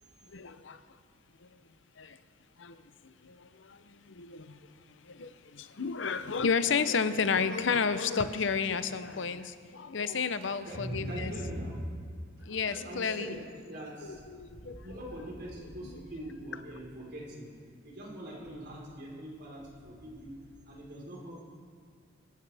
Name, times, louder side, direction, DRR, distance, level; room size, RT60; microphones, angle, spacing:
voice 1, 0.3-1.0 1.4-1.6 2.0-2.2 2.6-11.4 12.4-13.4 14.0-14.9 15.8-15.9, left 5 dB, 70° left, 12 dB, 0.7 m, -32 dB
voice 2, 10.6-11.8 12.7-17.5 17.8-20.3 20.6-21.4, equal, 60° right, -3 dB, 4.3 m, -42 dB
24.5 x 14.0 x 3.5 m, 2.1 s
head